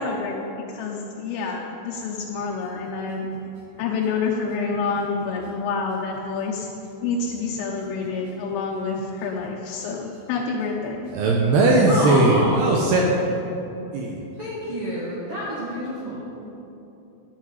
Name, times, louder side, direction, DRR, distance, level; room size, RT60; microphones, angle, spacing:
voice 1, 0.0-3.3 3.8-6.7 7.0-11.1, left 4 dB, 85° left, -2 dB, 3.5 m, -28 dB
voice 2, 11.1-13.0 13.9-14.2, right 2 dB, 75° right, -1 dB, 2.6 m, -18 dB
voice 3, 11.9-12.6 14.4-16.2, equal, 45° right, -9 dB, 2.0 m, -28 dB
11.5 x 6.5 x 9.2 m, 2.9 s
omnidirectional pair, 5.7 m